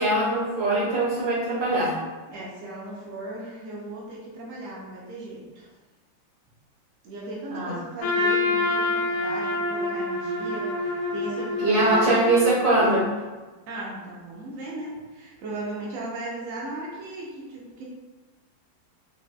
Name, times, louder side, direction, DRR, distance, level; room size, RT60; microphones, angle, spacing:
voice 1, 0.0-2.0 7.5-7.8 11.6-13.1, right 2 dB, 50° right, -5 dB, 1.1 m, -22 dB
voice 2, 2.3-5.7 7.0-12.1 13.7-17.8, right 2 dB, 80° right, -5 dB, 0.7 m, -36 dB
Trumpet, 8.0-13.1, left 2 dB, 80° left, 0.7 m, -27 dB
4.1 x 2.2 x 2.3 m, 1.2 s
omnidirectional pair, 2.1 m